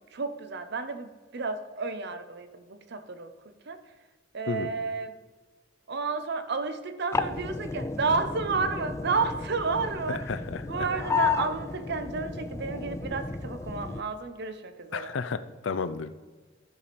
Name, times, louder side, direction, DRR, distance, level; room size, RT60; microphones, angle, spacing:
voice 1, 0.1-3.8 4.3-5.2 5.9-10.2 10.7-15.1, right 4 dB, 60° right, 10 dB, 0.7 m, -31 dB
sound 1, 7.1-14.0, left 4 dB, 15° left, 0.3 m, -33 dB
voice 2, 10.1-10.6 14.9-16.1, left 5 dB, 80° left, 12 dB, 0.5 m, -32 dB
12.5 x 5.2 x 4.2 m, 1.3 s
head